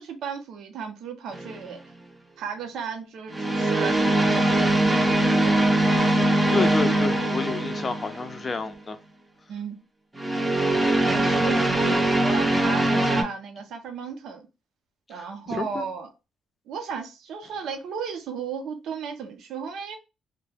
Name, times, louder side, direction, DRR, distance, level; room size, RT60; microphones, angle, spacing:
voice 1, 0.0-1.8 2.4-5.6 6.6-6.7 9.5-9.8 11.0-14.5 15.1-16.1 16.7-20.0, right 6 dB, 75° right, 0.6 m, -35 dB
sound 1, 1.3-1.7 3.3-8.4 10.2-13.2, right 1 dB, 15° right, 0.6 m, -22 dB
voice 2, 6.5-9.0 11.4-12.0 15.2-15.8, left 4 dB, 35° left, 0.5 m, -30 dB
2.2 x 2.1 x 3.2 m
cardioid pair, 90°, 0 cm